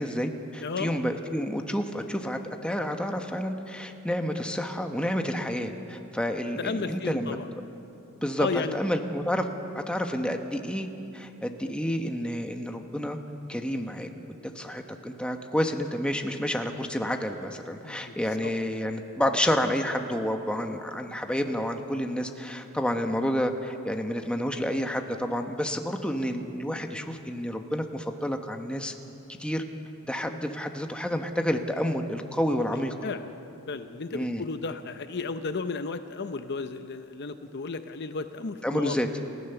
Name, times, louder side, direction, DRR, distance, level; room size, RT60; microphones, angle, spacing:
voice 1, 0.0-7.4 8.2-9.4 9.7-10.9 11.1-13.2 13.5-14.1 14.5-28.9 29.4-29.6 30.0-32.9 34.1-34.4 38.6-39.1, equal, 5° left, 4 dB, 1.2 m, -29 dB
voice 2, 0.6-0.9 6.6-7.5 8.4-8.8 17.8-18.2 18.4-18.5 33.0-33.3 33.7-39.0, left 4 dB, 50° left, 9 dB, 0.7 m, -33 dB
29.0 x 15.5 x 7.0 m, 2.8 s
head